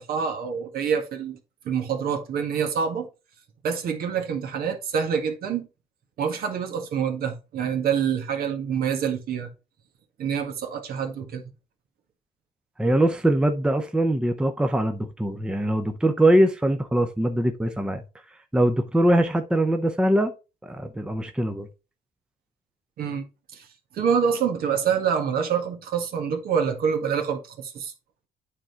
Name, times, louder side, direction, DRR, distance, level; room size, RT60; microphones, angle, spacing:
voice 1, 0.0-1.4 1.6-3.1 3.6-5.7 6.2-9.5 10.2-11.4 23.0-23.3 23.5-23.7 23.9-27.9, right 7 dB, 60° right, 1.8 m, -26 dB
voice 2, 12.8-18.0 18.5-20.3 20.6-21.7, right 1 dB, 5° right, 0.7 m, -22 dB
8.9 x 3.8 x 4.4 m
cardioid pair, 110°, 17 cm